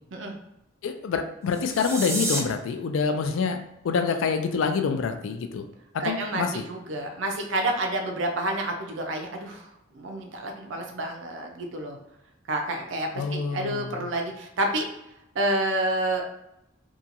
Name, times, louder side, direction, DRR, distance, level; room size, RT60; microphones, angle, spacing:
voice 1, 0.8-3.6 3.8-5.6 5.9-6.6 13.1-14.1, left 5 dB, 85° left, 7 dB, 0.3 m, -26 dB
sound 1, 1.4-2.4, right 2 dB, 15° right, 0.3 m, -30 dB
voice 2, 6.0-12.0 12.5-14.9 15.3-16.2, right 1 dB, 70° right, 3 dB, 0.5 m, -29 dB
2.8 x 2.3 x 2.5 m, 0.85 s
head